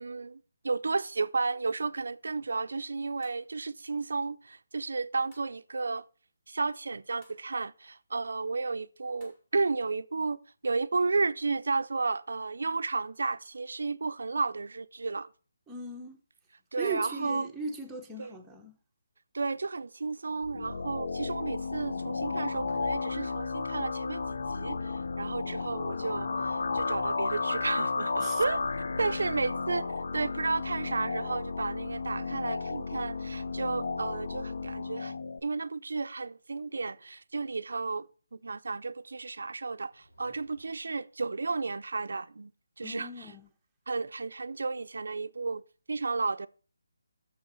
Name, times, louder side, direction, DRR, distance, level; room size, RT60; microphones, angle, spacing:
voice 1, 0.0-6.0 6.5-15.3 16.7-17.5 18.2-18.3 19.3-24.2 24.5-28.6 29.0-29.9 30.1-42.5 42.8-43.3 43.9-45.6 45.9-46.5, right 3 dB, 75° right, 0.4 m, -33 dB
sound 1, 3.2-3.5 5.3-5.6 7.2-7.5 9.2-9.4, left 2 dB, 20° left, 1.7 m, -61 dB
voice 2, 15.7-16.2 16.8-18.7 28.2-28.4 42.8-43.5, right 3 dB, 5° right, 0.7 m, -38 dB
sound 2, 20.4-35.4, left 4 dB, 65° left, 0.5 m, -33 dB
sound 3, 39.7-41.0, equal, 85° left, 4.2 m, -62 dB
6.8 x 5.4 x 6.7 m
hypercardioid pair, 170°, 0 cm